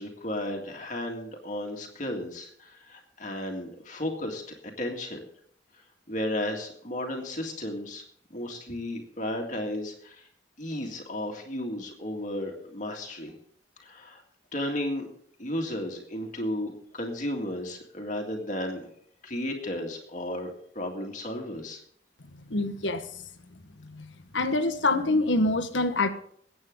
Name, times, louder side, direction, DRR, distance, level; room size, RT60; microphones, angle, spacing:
voice 1, 0.0-5.2 6.1-8.0 8.3-10.3 10.6-13.4 13.8-14.2 14.5-15.1 15.4-18.9 19.2-21.8, left 1 dB, 45° left, 2.0 m, -34 dB
voice 2, 22.5-23.1 23.9-24.1 24.3-26.1, left 2 dB, 90° left, 1.3 m, -25 dB
22.0 x 8.8 x 3.8 m
head